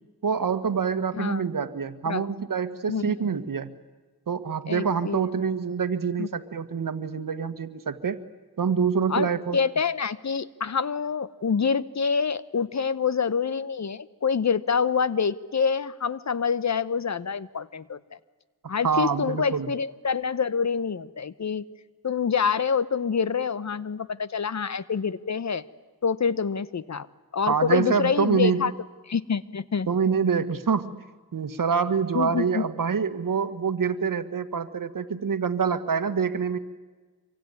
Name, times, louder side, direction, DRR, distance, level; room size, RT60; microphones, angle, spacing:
voice 1, 0.2-3.7 4.3-8.2 8.6-9.6 18.8-19.7 27.5-28.7 29.9-31.0 31.3-36.6, right 6 dB, 60° right, 11 dB, 1.6 m, -26 dB
voice 2, 2.9-3.4 4.7-5.3 6.2-6.3 9.1-18.0 18.7-21.6 22.0-25.6 26.0-27.1 27.3-28.7 29.1-29.9 32.1-32.7, left 6 dB, 45° left, 16 dB, 0.9 m, -26 dB
26.0 x 24.0 x 9.6 m, 1.3 s
cardioid pair, 75°, 38 cm